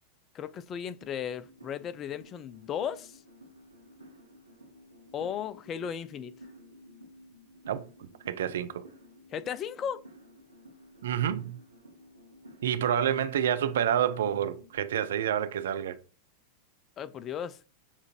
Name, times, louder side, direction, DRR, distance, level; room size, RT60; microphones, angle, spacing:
voice 1, 0.3-3.2 5.1-6.3 9.3-10.0 17.0-17.6, left 8 dB, 30° left, 0.3 m, -35 dB
sound 1, 1.0-14.8, equal, 80° right, 0.9 m, -54 dB
voice 2, 7.7-8.9 11.0-11.6 12.6-16.0, right 9 dB, 60° right, 0.4 m, -29 dB
6.9 x 2.5 x 2.9 m
figure-of-eight pair, 90°, 0 cm